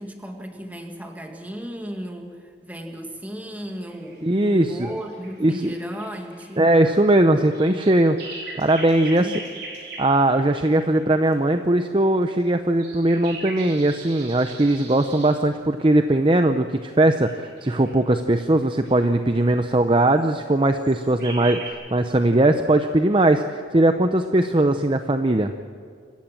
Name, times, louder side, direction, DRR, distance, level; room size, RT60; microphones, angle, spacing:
voice 1, 0.0-6.7 9.1-9.4, equal, 10° right, 3 dB, 2.0 m, -35 dB
sound 1, 3.5-11.3 12.2-15.4 16.8-18.1 18.6-19.0 20.0-20.3 20.7-21.7, right 3 dB, 60° right, 4.7 m, -41 dB
voice 2, 4.2-4.7 5.4-5.7 6.6-9.3 10.0-25.5, right 1 dB, 25° right, 8 dB, 0.7 m, -19 dB
26.5 x 15.0 x 7.5 m, 2.2 s
head